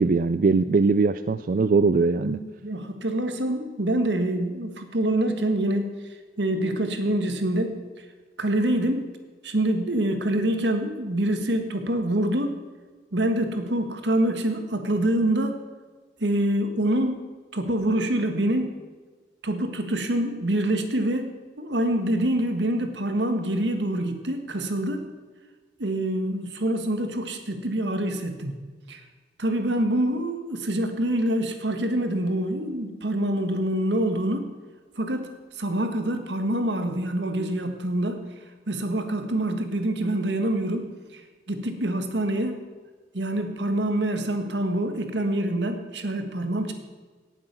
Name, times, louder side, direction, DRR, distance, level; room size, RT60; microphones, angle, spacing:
voice 1, 0.0-2.4, right 4 dB, 50° right, 12 dB, 0.3 m, -21 dB
voice 2, 2.2-6.0 6.4-7.8 8.4-9.1 9.4-12.6 13.1-15.6 16.2-17.3 17.5-18.8 19.4-21.3 21.6-25.0 25.8-28.6 28.9-29.0 29.4-34.5 35.0-38.2 38.7-41.2 41.5-42.7 43.1-46.7, right 1 dB, 85° right, 6 dB, 1.6 m, -26 dB
17.5 x 7.7 x 6.1 m, 1.4 s
head